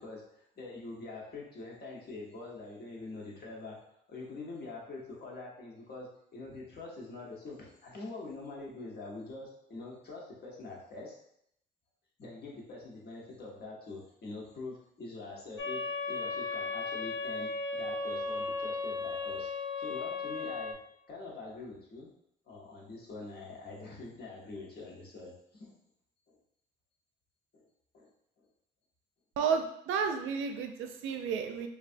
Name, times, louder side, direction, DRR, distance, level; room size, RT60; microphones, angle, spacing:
voice 1, 0.0-3.8 4.1-11.2 12.2-15.8 16.1-19.5 19.8-20.8 21.1-22.1 22.4-25.7 26.3-26.4 27.5-27.7 27.9-28.1, left 3 dB, 55° left, -3 dB, 1.0 m, -44 dB
sound 1, 15.6-20.7, left 4 dB, 80° left, 0.5 m, -35 dB
voice 2, 29.4-31.7, right 6 dB, 80° right, 6 dB, 0.4 m, -32 dB
3.2 x 2.3 x 2.6 m, 0.73 s
cardioid pair, 90°, 20 cm